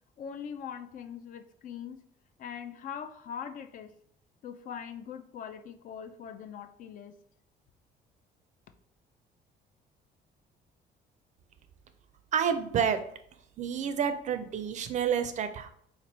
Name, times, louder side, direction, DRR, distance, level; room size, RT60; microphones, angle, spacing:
voice 1, 0.2-2.0 2.4-3.9 4.4-7.2, left 8 dB, 50° left, 8 dB, 0.4 m, -41 dB
voice 2, 12.3-13.0 13.6-15.7, right 7 dB, 45° right, 9 dB, 0.4 m, -29 dB
3.0 x 2.6 x 4.0 m, 0.68 s
cardioid pair, 110°, 17 cm